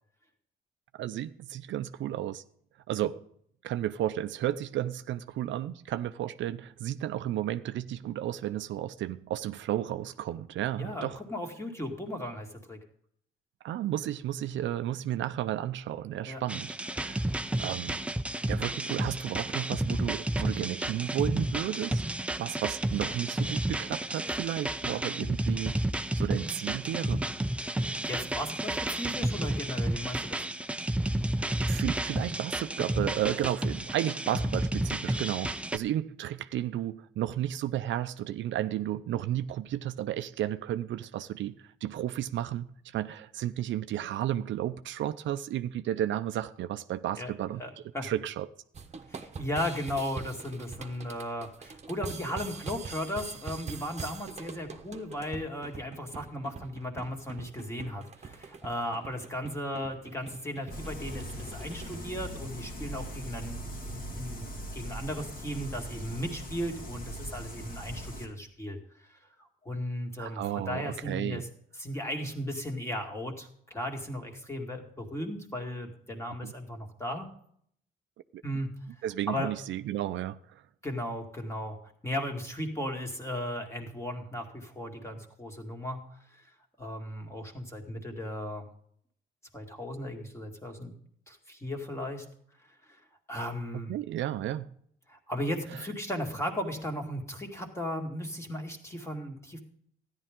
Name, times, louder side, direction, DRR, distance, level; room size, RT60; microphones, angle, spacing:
voice 1, 1.0-2.4 2.9-3.2 3.6-11.2 13.6-17.3 17.6-18.0 18.5-22.0 22.4-25.7 26.1-27.3 30.1-30.2 31.4-47.6 48.0-48.5 70.2-71.4 76.4-76.5 78.3-78.4 79.0-80.6 93.9-94.7 95.7-95.9, right 12 dB, 70° right, 0.5 m, -33 dB
voice 2, 10.8-12.8 16.3-16.4 28.0-30.4 47.2-47.3 47.6-48.1 49.1-69.1 69.6-71.5 71.8-77.3 78.4-78.7 79.3-79.5 80.8-81.8 82.0-86.0 86.3-86.4 86.8-88.7 89.5-90.9 91.3-92.3 92.9-93.0 93.3-93.9 95.1-99.6, left 1 dB, 15° left, 2.2 m, -36 dB
sound 1, 16.5-35.8, right 1 dB, 5° right, 0.5 m, -31 dB
sound 2, 48.7-62.1, right 5 dB, 35° right, 1.1 m, -44 dB
sound 3, 60.7-68.3, equal, 45° left, 2.3 m, -40 dB
13.5 x 10.5 x 3.7 m
cardioid pair, 90°, 20 cm